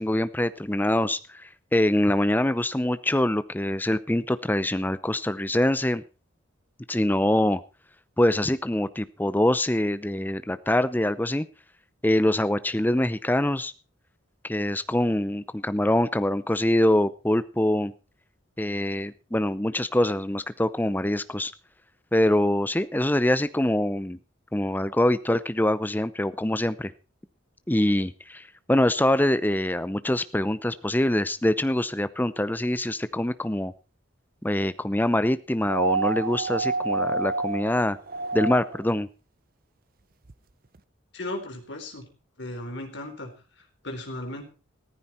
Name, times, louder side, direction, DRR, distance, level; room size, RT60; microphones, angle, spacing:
voice 1, 0.0-6.0 6.9-7.6 8.2-11.5 12.0-13.7 14.4-17.9 18.6-21.5 22.1-24.2 24.5-26.9 27.7-33.7 34.4-38.0 38.3-39.1, left 1 dB, 10° left, 14 dB, 0.6 m, -24 dB
sound 1, 35.6-38.9 40.3-40.4, right 3 dB, 45° right, 0.7 m, -28 dB
voice 2, 41.1-42.1 42.4-43.3 43.6-44.4, left 1 dB, 60° left, 4 dB, 3.9 m, -36 dB
15.0 x 14.0 x 4.4 m, 0.33 s
head